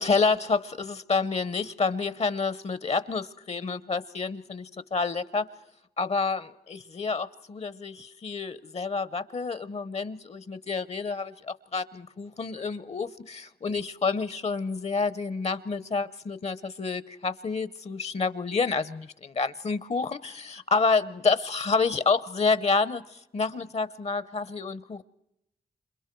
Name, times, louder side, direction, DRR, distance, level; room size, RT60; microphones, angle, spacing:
voice 1, 0.0-4.6 4.9-5.5 6.0-25.0, left 4 dB, 45° left, 0.8 m, -28 dB
30.0 x 27.5 x 4.6 m
wide cardioid pair, 95°, 16 cm